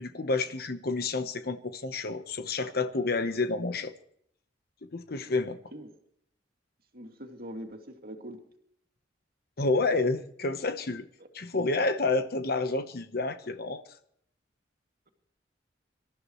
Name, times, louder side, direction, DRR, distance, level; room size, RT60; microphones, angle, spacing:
voice 1, 0.0-3.9 4.9-5.6 9.6-11.0 11.3-13.8, left 3 dB, 55° left, 9 dB, 1.0 m, -29 dB
voice 2, 6.9-8.4 11.2-11.3, equal, 55° right, 3 dB, 2.4 m, -42 dB
25.5 x 13.5 x 3.1 m, 0.67 s
head